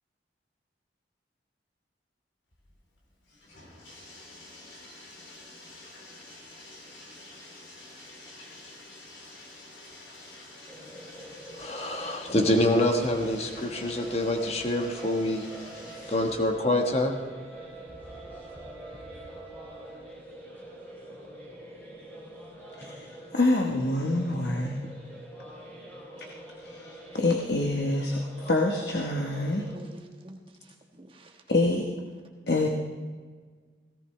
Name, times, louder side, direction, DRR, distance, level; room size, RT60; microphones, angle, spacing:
Bathtub (filling or washing), 2.5-16.6, left 2 dB, 75° left, 3.6 m, -48 dB
sound 1, 10.7-29.8, equal, 10° left, 3.1 m, -46 dB
voice 1, 11.5-15.5 16.1-17.2, left 1 dB, 35° left, 4 dB, 1.3 m, -26 dB
Wind instrument woodwind instrument, 13.7-20.1, right 5 dB, 5° right, 3.0 m, -49 dB
voice 2, 22.8-24.8 26.2-26.3 26.6-29.7 31.5-31.9 32.5-32.7, left 2 dB, 60° left, 1 dB, 1.1 m, -26 dB
voice 3, 29.6-31.6, right 1 dB, 30° right, 2 dB, 1.3 m, -49 dB
17.5 x 17.0 x 3.3 m, 1.5 s
head